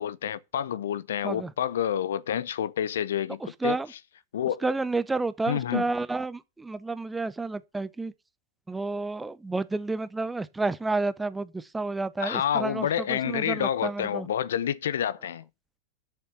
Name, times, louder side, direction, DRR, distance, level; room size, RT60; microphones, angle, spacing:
voice 1, 0.0-3.8 4.3-4.7 5.5-5.9 12.2-15.5, left 9 dB, 65° left, 0.6 m, -28 dB
voice 2, 4.6-8.1 8.7-14.3, right 3 dB, 10° right, 0.7 m, -30 dB
6.8 x 6.8 x 7.4 m
figure-of-eight pair, 95°, 0 cm